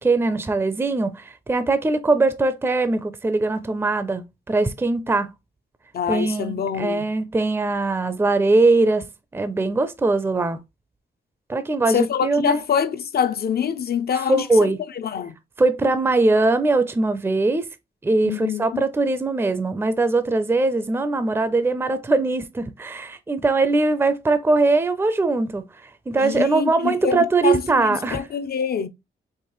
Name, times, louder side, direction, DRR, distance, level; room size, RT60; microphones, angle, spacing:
voice 1, 0.0-5.3 6.1-9.1 9.3-10.6 11.5-12.6 14.1-14.8 15.6-17.7 18.0-25.6 26.1-28.2, right 3 dB, 10° right, 0.5 m, -21 dB
voice 2, 5.9-7.0 11.9-15.3 18.2-18.8 26.2-27.6 28.1-28.9, left 7 dB, 55° left, 0.5 m, -25 dB
4.6 x 2.8 x 3.0 m
cardioid pair, 100°, 19 cm